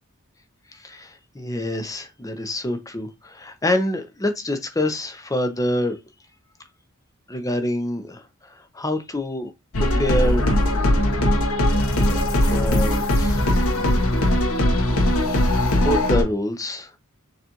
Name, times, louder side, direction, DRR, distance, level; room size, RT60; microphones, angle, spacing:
voice 1, 0.7-6.0 7.3-9.5 9.8-10.5 11.2-11.5 12.0-13.4 15.7-16.9, left 1 dB, 15° left, 0.7 m, -26 dB
sound 1, 9.7-16.2, left 1 dB, 85° left, 1.1 m, -20 dB
6.7 x 2.5 x 2.9 m
head